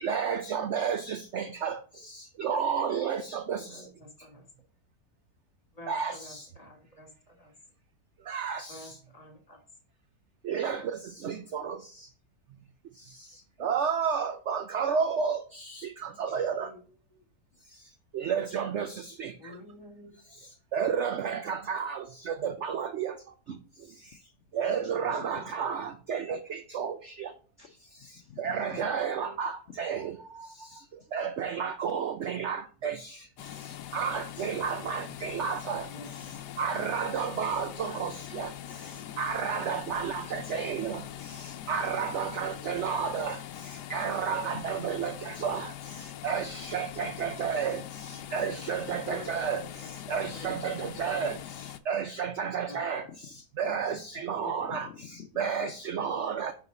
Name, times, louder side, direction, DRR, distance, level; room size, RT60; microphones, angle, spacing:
voice 1, 0.0-1.8 2.4-3.6 5.9-6.1 8.3-8.6 10.5-10.8 11.2-11.7 13.6-15.4 16.2-16.7 18.1-18.9 19.2-19.3 20.7-22.0 22.4-23.1 24.6-26.4 26.7-26.9 28.4-29.5 29.8-30.0 31.1-32.9 33.9-35.8 36.6-38.1 38.4-38.5 39.2-41.0 41.7-43.3 43.9-45.1 45.4-45.7 46.2-47.8 48.3-49.6 50.1-51.3 51.9-53.0 53.6-54.9 55.4-56.5, right 7 dB, 70° right, 0.7 m, -30 dB
voice 2, 3.7-4.5 5.7-7.5 8.7-9.6 13.6-13.7 16.3-16.8 17.1-17.2 19.4-20.1 29.0-29.4 35.9-36.3 37.8-38.1 43.1-43.2 49.0-49.5 49.8-49.9 50.4-50.6 51.1-51.4 52.7-53.1 54.4-54.5, left 1 dB, 25° left, 2.0 m, -48 dB
voice 3, 24.8-25.5 26.3-26.4 27.6-28.9 33.8-33.9 41.8-42.2 44.5-44.6 49.6-49.7 53.2-53.4 53.9-54.0 54.6-55.3, left 9 dB, 60° left, 0.8 m, -49 dB
sound 1, 33.4-51.8, left 12 dB, 80° left, 1.2 m, -42 dB
9.9 x 4.0 x 3.9 m
omnidirectional pair, 1.8 m